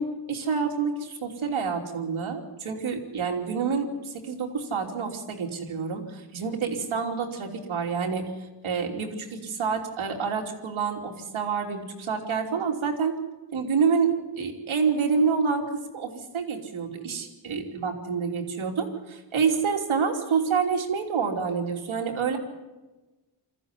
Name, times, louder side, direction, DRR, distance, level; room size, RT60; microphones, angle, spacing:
voice 1, 0.0-8.3 8.6-13.1 13.5-15.6 15.9-22.4, right 5 dB, 85° right, 1 dB, 3.2 m, -28 dB
22.0 x 14.5 x 9.8 m, 1.1 s
cardioid pair, 80°, 47 cm